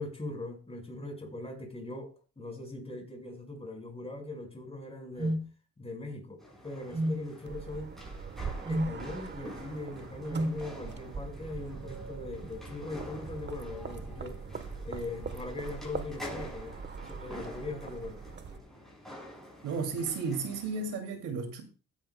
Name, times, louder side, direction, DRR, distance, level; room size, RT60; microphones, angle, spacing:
voice 1, 0.0-5.4 5.8-7.9 8.7-14.4 14.8-18.2, left 2 dB, 20° left, 5.0 m, -40 dB
sound 1, 5.2-5.5 6.9-7.2 8.7-9.0 10.3-10.6, right 1 dB, 15° right, 0.6 m, -30 dB
sound 2, 6.4-21.0, left 1 dB, ahead, 6.9 m, -48 dB
sound 3, 7.5-18.6, right 5 dB, 35° right, 1.1 m, -42 dB
voice 2, 19.6-21.6, right 4 dB, 90° right, 2.5 m, -33 dB
16.0 x 10.0 x 2.2 m
cardioid pair, 90°, 30 cm